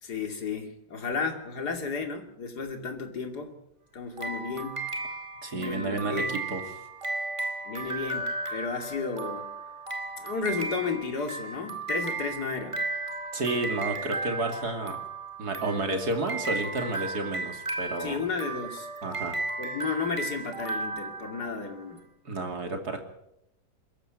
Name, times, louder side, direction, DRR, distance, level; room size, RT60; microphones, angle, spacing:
voice 1, 0.0-3.5 3.9-4.9 5.5-6.3 7.6-9.5 10.2-12.8 18.0-18.9 19.6-22.0, left 5 dB, 55° left, 5 dB, 3.1 m, -33 dB
sound 1, 4.2-21.8, right 2 dB, 15° right, 2.0 m, -35 dB
voice 2, 5.4-6.6 13.3-15.0 15.4-18.2 19.0-19.4 22.2-23.0, right 2 dB, 55° right, 5 dB, 3.2 m, -31 dB
22.5 x 14.0 x 9.2 m, 0.80 s
omnidirectional pair, 2.1 m